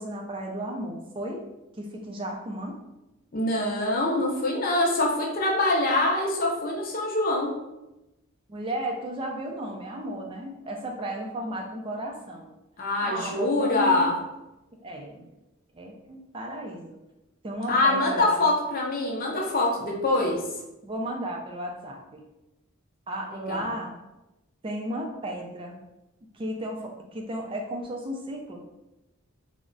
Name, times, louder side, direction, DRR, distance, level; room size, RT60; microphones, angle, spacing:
voice 1, 0.0-1.4 1.8-2.8 8.5-12.5 13.0-14.1 14.8-15.3 15.7-17.0 17.4-18.5 20.8-22.2 23.1-23.9 24.6-25.8 26.3-28.6, right 1 dB, 25° right, 1 dB, 0.3 m, -34 dB
voice 2, 3.3-7.5 12.8-14.1 17.7-20.4 23.3-23.7, left 2 dB, 40° left, 0 dB, 0.5 m, -24 dB
2.3 x 2.1 x 3.7 m, 0.96 s
head